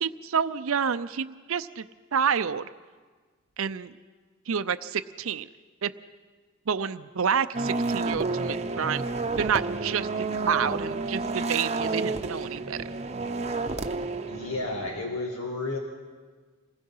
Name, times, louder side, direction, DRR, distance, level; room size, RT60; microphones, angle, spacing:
voice 1, 0.0-1.8 2.1-2.7 3.6-3.9 4.5-5.5 5.8-5.9 6.7-9.0 9.3-10.1 10.4-12.8, right 7 dB, 70° right, 11 dB, 0.5 m, -28 dB
sound 1, 7.5-15.0, right 3 dB, 30° right, 0.8 m, -30 dB
voice 2, 14.3-15.8, left 2 dB, 90° left, 1 dB, 2.0 m, -32 dB
25.5 x 19.5 x 5.6 m, 1.5 s
head